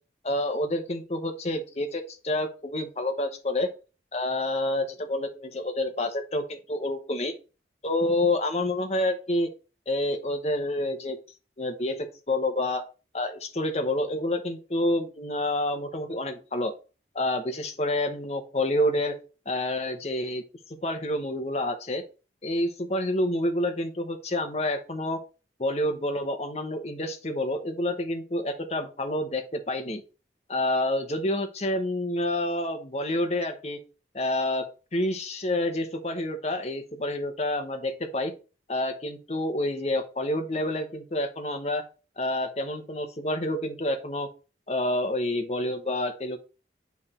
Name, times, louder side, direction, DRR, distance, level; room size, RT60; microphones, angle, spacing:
voice 1, 0.2-3.7 4.1-7.3 7.8-9.5 9.9-11.2 11.6-12.8 13.1-16.7 17.1-19.1 19.5-20.4 20.8-22.0 22.4-25.2 25.6-30.0 30.5-33.8 34.1-34.6 34.9-38.3 38.7-41.8 42.2-44.3 44.7-46.4, left 1 dB, 35° left, 6 dB, 1.0 m, -28 dB
8.9 x 3.5 x 4.3 m, 0.34 s
head